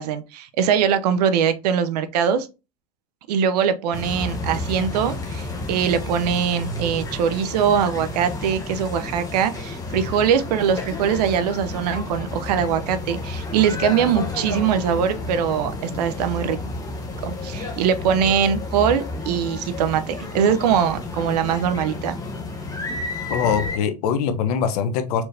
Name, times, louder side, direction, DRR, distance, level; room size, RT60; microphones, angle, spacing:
voice 1, 0.0-2.5 3.3-16.6 17.2-22.2, right 8 dB, 80° right, 0.6 m, -22 dB
sound 1, 3.9-23.8, left 2 dB, 15° left, 1.0 m, -31 dB
voice 2, 23.3-25.2, left 7 dB, 70° left, 0.8 m, -22 dB
4.4 x 3.4 x 2.6 m
supercardioid pair, 110°, 20 cm